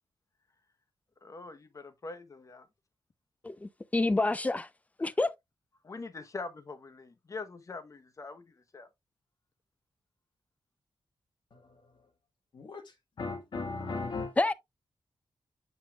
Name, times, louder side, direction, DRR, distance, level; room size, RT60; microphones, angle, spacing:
voice 1, 1.2-2.7 5.8-8.4 8.7-8.9, left 3 dB, 40° left, 0.9 m, -43 dB
voice 2, 3.4-4.7 5.0-5.3 14.4-14.5, left 2 dB, 15° left, 0.5 m, -28 dB
voice 3, 11.5-12.1 12.5-14.5, left 3 dB, 60° left, 1.5 m, -38 dB
7.7 x 5.4 x 2.3 m
wide cardioid pair, 125°, 9 cm